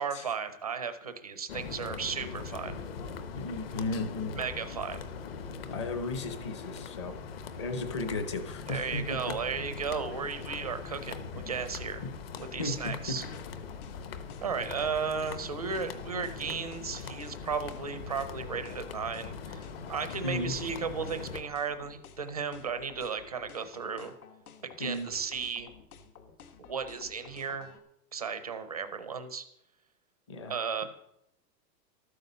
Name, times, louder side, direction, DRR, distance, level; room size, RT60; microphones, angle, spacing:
voice 1, 0.0-2.8 4.3-5.0 8.7-12.0 12.5-13.3 14.4-24.1 24.6-25.7 26.7-27.7 28.1-29.4 30.4-30.8, right 6 dB, 25° right, 10 dB, 0.4 m, -35 dB
sound 1, 1.5-21.4, left 5 dB, 35° left, 1.0 m, -41 dB
voice 2, 3.3-4.4 5.7-7.2 7.6-9.3 12.0-12.1 12.6-13.2 20.2-20.5 24.8-25.1 30.3-30.5, left 2 dB, 20° left, 9 dB, 0.6 m, -35 dB
sound 2, 12.4-27.8, left 7 dB, 60° left, 1.7 m, -53 dB
12.5 x 9.5 x 6.6 m, 0.81 s
supercardioid pair, 180°, 49 cm